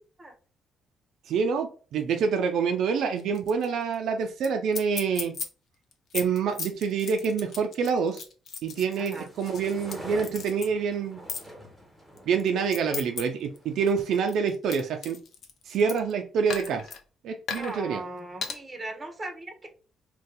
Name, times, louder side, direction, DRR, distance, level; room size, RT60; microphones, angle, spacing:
voice 1, 1.3-5.3 6.1-8.2 8.6-11.2 12.3-15.2 15.7-16.8 17.2-18.0, right 6 dB, 75° right, 5 dB, 0.4 m, -27 dB
sound 1, 3.2-3.7 3.9-4.0 4.4-4.5 4.7-5.5 5.9-10.0 10.2-10.7 11.3-11.5 12.2-13.2 13.6-16.1 16.5-17.0 17.5-17.8 18.4-18.6, left 6 dB, 60° left, 0.5 m, -36 dB
Sailing Ambience - Low Wind, 8.8-14.2, equal, ahead, 1.3 m, -45 dB
voice 2, 9.0-9.3 17.6-19.7, right 2 dB, 25° right, 4 dB, 0.8 m, -38 dB
2.6 x 2.2 x 3.8 m, 0.38 s
cardioid pair, 90°, 0 cm